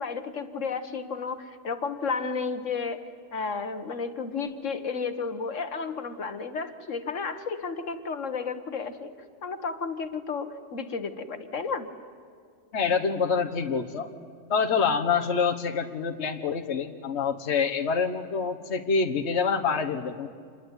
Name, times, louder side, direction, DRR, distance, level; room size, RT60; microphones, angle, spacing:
voice 1, 0.0-3.0 3.3-9.1 9.4-11.9, left 5 dB, 80° left, 9 dB, 1.7 m, -32 dB
voice 2, 12.7-14.1 14.5-20.3, left 5 dB, 60° left, 5 dB, 1.6 m, -26 dB
27.0 x 21.0 x 9.8 m, 2.2 s
omnidirectional pair, 1.3 m